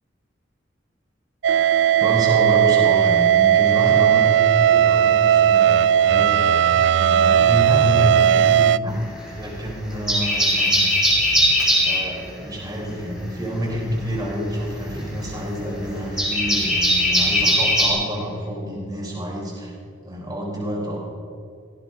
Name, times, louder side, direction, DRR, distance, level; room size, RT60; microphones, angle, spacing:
sound 1, 1.4-8.8, right 10 dB, 65° right, 0.3 m, -16 dB
voice 1, 2.0-6.4 7.0-9.0 9.4-10.9 11.5-19.7 20.0-21.0, equal, 20° right, -4 dB, 4.2 m, -27 dB
sound 2, 8.9-9.6 9.9-12.1 13.7-17.9, equal, ahead, 5.5 m, -20 dB
18.5 x 15.0 x 5.0 m, 2.3 s
head